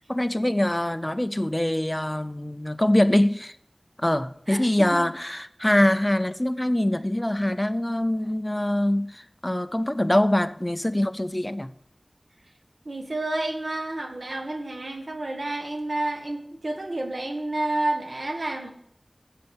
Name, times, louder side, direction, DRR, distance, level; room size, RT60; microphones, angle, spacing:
voice 1, 0.1-3.6 4.0-11.7, left 1 dB, 25° left, 0.6 m, -24 dB
voice 2, 4.5-5.1 12.8-18.7, right 2 dB, 90° right, 1.6 m, -30 dB
10.0 x 8.0 x 5.3 m
wide cardioid pair, 45°, 0 cm